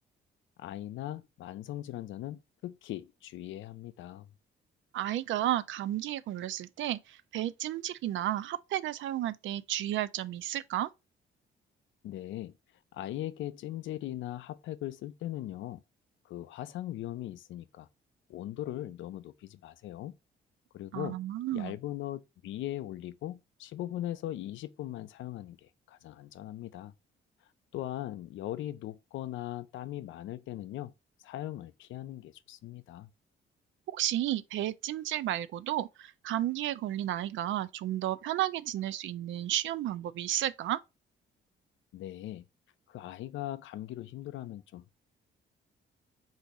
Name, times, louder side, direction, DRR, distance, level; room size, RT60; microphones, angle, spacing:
voice 1, 0.6-4.3 12.0-12.5 12.9-15.8 16.3-17.9 18.3-20.1 20.7-21.2 21.5-26.9 27.7-30.9 31.2-33.1 41.9-42.5 42.9-45.0, left 13 dB, 75° left, 0.5 m, -39 dB
voice 2, 4.9-10.9 20.9-21.8 33.9-40.8, right 13 dB, 75° right, 0.4 m, -32 dB
4.0 x 2.5 x 4.6 m
cardioid pair, 90°, 20 cm